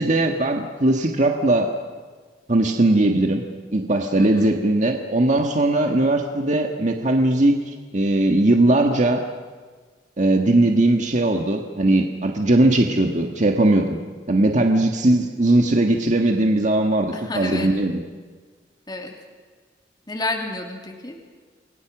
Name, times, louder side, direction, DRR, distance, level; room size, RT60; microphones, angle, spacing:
voice 1, 0.0-1.7 2.5-3.4 3.7-9.2 10.2-14.0 14.3-18.0, right 2 dB, 45° right, 3 dB, 1.7 m, -19 dB
voice 2, 4.2-4.5 17.1-17.7 18.9-19.1 20.1-21.2, left 2 dB, 25° left, 1 dB, 2.7 m, -30 dB
29.0 x 22.0 x 6.2 m, 1.5 s
head